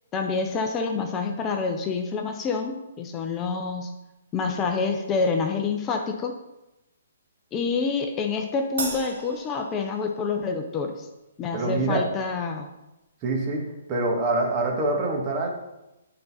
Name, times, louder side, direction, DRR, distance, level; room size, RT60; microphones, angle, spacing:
voice 1, 0.1-4.0 4.3-6.3 7.5-11.1 11.4-12.7, left 4 dB, 20° left, 4 dB, 0.6 m, -27 dB
Crash cymbal, 8.8-10.4, right 3 dB, 65° right, 2.0 m, -35 dB
voice 2, 11.5-12.1 13.2-15.5, right 2 dB, 30° right, 0 dB, 1.6 m, -25 dB
8.6 x 3.9 x 4.1 m, 0.96 s
hypercardioid pair, 140°, 0 cm